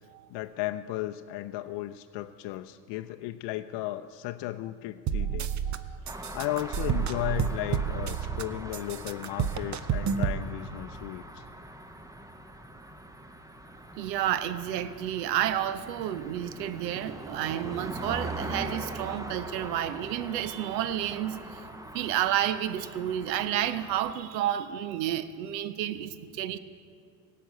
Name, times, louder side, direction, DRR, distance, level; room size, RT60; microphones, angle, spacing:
voice 1, 0.3-5.5 6.3-11.5, left 15 dB, 60° left, 8 dB, 0.6 m, -35 dB
sound 1, 5.1-5.8 6.1-8.4 8.7-10.4, right 8 dB, 35° right, 0.7 m, -29 dB
voice 2, 5.7-6.0 13.9-21.6 21.9-26.6, right 11 dB, 85° right, 14 dB, 0.8 m, -31 dB
sound 2, 6.1-24.1, right 1 dB, 5° right, 0.8 m, -42 dB
17.0 x 5.9 x 8.1 m, 2.3 s
hypercardioid pair, 80°, 49 cm